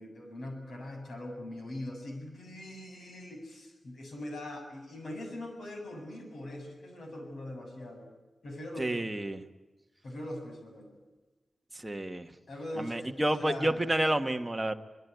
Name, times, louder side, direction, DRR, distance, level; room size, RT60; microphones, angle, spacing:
voice 1, 0.0-8.1 8.4-9.1 10.0-10.9 12.5-13.8, left 1 dB, 70° left, 3 dB, 7.6 m, -41 dB
voice 2, 8.8-9.4 11.7-12.3 12.8-14.7, right 1 dB, 10° right, 5 dB, 1.4 m, -30 dB
24.5 x 22.0 x 9.4 m, 1.2 s
wide cardioid pair, 150°, 0 cm